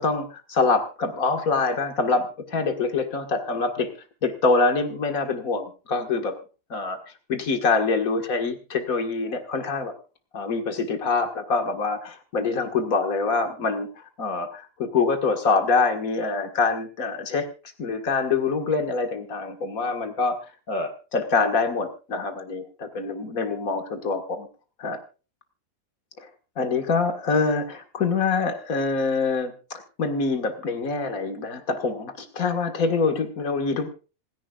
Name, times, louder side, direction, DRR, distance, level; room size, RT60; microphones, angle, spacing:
voice 1, 0.0-3.9 4.2-6.4 6.7-7.0 7.3-9.9 10.3-17.5 17.8-20.4 20.7-24.5 24.8-25.0 26.6-33.9, left 4 dB, 80° left, 6 dB, 2.2 m, -25 dB
26.0 x 11.0 x 2.4 m, 0.33 s
omnidirectional pair, 1.5 m